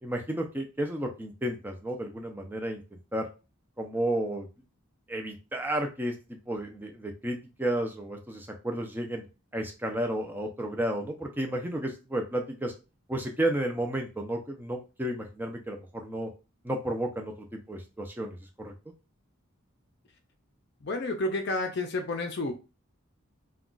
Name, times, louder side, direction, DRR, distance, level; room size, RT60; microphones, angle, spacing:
voice 1, 0.0-3.3 3.8-4.5 5.1-6.1 6.5-9.2 9.5-12.7 13.1-16.3 16.6-18.7, right 1 dB, 10° right, 3 dB, 0.4 m, -32 dB
voice 2, 20.8-22.5, left 2 dB, 50° left, 4 dB, 0.5 m, -30 dB
2.3 x 2.3 x 3.7 m, 0.30 s
head